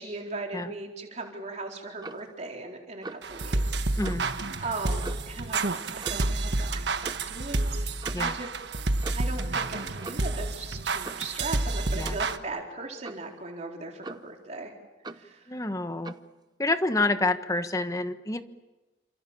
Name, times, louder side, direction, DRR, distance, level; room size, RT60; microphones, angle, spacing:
voice 1, 0.0-3.8 4.6-5.6 5.9-7.8 8.2-8.5 9.1-14.7 15.1-15.5, right 3 dB, 40° right, 0 dB, 4.0 m, -38 dB
Clock, 2.0-2.3 3.0-3.3 4.0-4.3 5.0-5.4 6.0-6.3 7.0-7.3 8.0-8.3 9.0-9.4 10.0-10.4 11.0-11.3 12.0-12.3 13.0-13.3 14.0-14.4 15.0-15.3 16.0-16.3, right 2 dB, 25° right, 0.9 m, -41 dB
sound 1, 3.2-12.4, right 2 dB, 75° right, 1.4 m, -29 dB
voice 2, 15.5-16.1 16.6-18.4, left 2 dB, 20° left, 9 dB, 1.3 m, -28 dB
29.0 x 27.5 x 7.3 m, 1.1 s
head